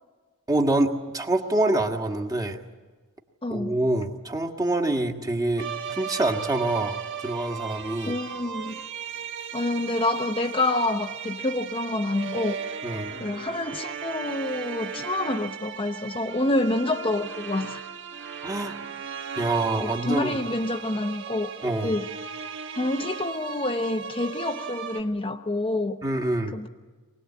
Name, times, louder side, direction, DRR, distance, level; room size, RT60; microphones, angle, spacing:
voice 1, 0.5-2.6 3.5-8.2 12.8-13.2 18.4-18.8 19.4-20.4 21.6-21.9 26.0-26.6, right 2 dB, 15° right, 1.6 m, -26 dB
voice 2, 3.4-3.8 8.1-8.8 9.5-12.6 13.2-17.8 19.8-21.5 21.8-22.1 22.8-26.0 26.5-26.7, left 2 dB, 25° left, 0.8 m, -27 dB
sound 1, 5.6-25.0, right 7 dB, 55° right, 1.3 m, -36 dB
24.0 x 19.0 x 8.5 m
head